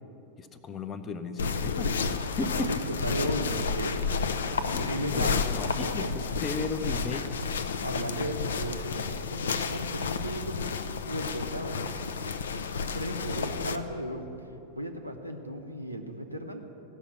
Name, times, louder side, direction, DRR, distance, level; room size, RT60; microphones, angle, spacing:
voice 1, 0.4-1.9 2.4-2.7 4.7-7.3, left 4 dB, 25° left, 9 dB, 0.6 m, -35 dB
sound 1, 1.4-13.8, left 5 dB, 65° left, 0.4 m, -31 dB
voice 2, 2.4-3.9 4.6-6.2 7.8-10.6 11.0-11.8 12.2-12.3 12.7-14.3 14.7-16.6, right 1 dB, 90° right, 3 dB, 0.8 m, -35 dB
15.0 x 5.8 x 6.5 m, 2.9 s
figure-of-eight pair, 90°, 0 cm